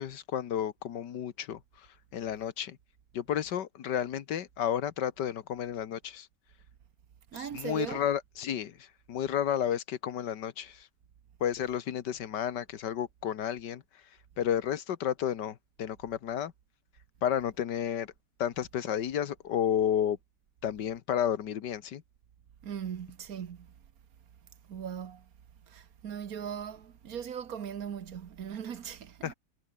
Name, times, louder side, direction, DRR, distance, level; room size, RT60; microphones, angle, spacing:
voice 1, 0.0-1.6 2.1-2.8 3.1-6.3 7.3-8.7 9.1-10.8 11.4-13.8 14.4-16.5 17.2-18.1 18.4-20.2 20.6-22.0 29.2-29.3, left 9 dB, 90° left, 1.8 m, -31 dB
voice 2, 7.3-8.0 22.6-23.7 24.7-25.3 25.7-29.3, right 8 dB, 60° right, 1.6 m, -39 dB
omnidirectional pair, 1.8 m